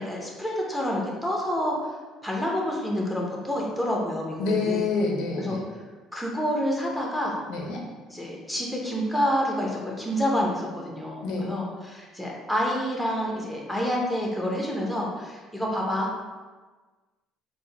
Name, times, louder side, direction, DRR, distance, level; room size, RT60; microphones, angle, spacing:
voice 1, 0.0-1.8 2.2-4.9 5.4-5.6 6.1-7.4 8.1-16.3, equal, ahead, -2 dB, 0.7 m, -28 dB
voice 2, 4.4-5.6 7.5-7.8 11.2-11.5, left 4 dB, 80° left, 0 dB, 0.6 m, -27 dB
3.6 x 2.1 x 3.3 m, 1.3 s
cardioid pair, 105°, 0 cm